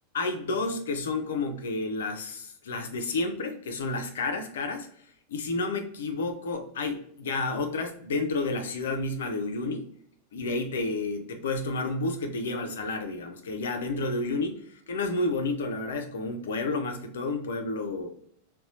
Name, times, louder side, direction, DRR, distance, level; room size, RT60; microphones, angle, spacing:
voice 1, 0.1-4.9 5.3-9.9 10.3-18.1, left 3 dB, 60° left, 5 dB, 0.5 m, -30 dB
4.1 x 2.2 x 2.5 m, 0.67 s
figure-of-eight pair, 90°, 0 cm